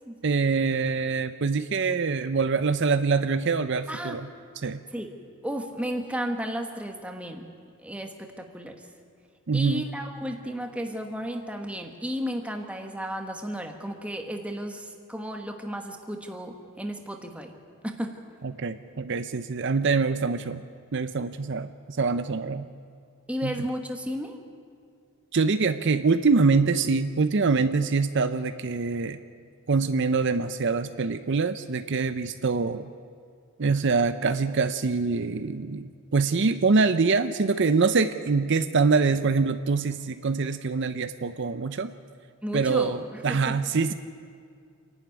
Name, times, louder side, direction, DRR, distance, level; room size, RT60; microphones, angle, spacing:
voice 1, 0.2-4.3 4.6-4.8 9.5-9.9 18.4-20.6 20.9-22.7 23.4-23.7 25.3-29.2 29.7-32.9 33.6-41.9 42.5-43.9, right 4 dB, 55° right, 10 dB, 0.6 m, -24 dB
voice 2, 3.9-4.2 4.9-5.1 5.4-7.5 7.8-8.8 9.5-17.5 17.8-18.2 23.3-24.4 42.4-43.6, equal, 5° right, 4 dB, 1.4 m, -33 dB
27.5 x 11.5 x 9.3 m, 2.2 s
head